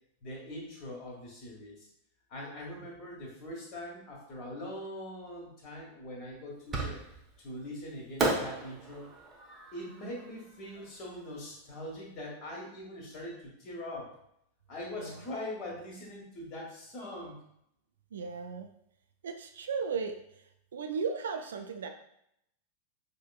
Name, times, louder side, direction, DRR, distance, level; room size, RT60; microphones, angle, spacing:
voice 1, 0.2-1.9 2.3-7.0 7.4-9.1 9.7-14.1 14.7-17.4, left 1 dB, 35° left, -1 dB, 1.2 m, -42 dB
Fireworks, 6.7-7.4 8.2-11.3, right 2 dB, 20° right, 0.7 m, -35 dB
voice 2, 18.1-18.7 19.2-20.2 20.7-21.9, right 5 dB, 65° right, 5 dB, 0.3 m, -35 dB
4.8 x 2.1 x 2.3 m, 0.75 s
figure-of-eight pair, 90°, 0 cm